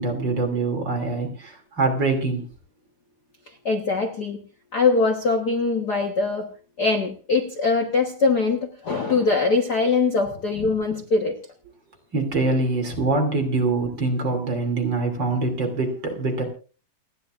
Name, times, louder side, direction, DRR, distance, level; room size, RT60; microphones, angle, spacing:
voice 1, 0.0-2.5 12.1-16.4, right 3 dB, 35° right, 3 dB, 3.2 m, -24 dB
voice 2, 3.6-4.4 4.7-6.5 6.8-11.4, left 4 dB, 75° left, 4 dB, 0.9 m, -22 dB
29.0 x 10.5 x 2.5 m, 0.37 s
omnidirectional pair, 3.9 m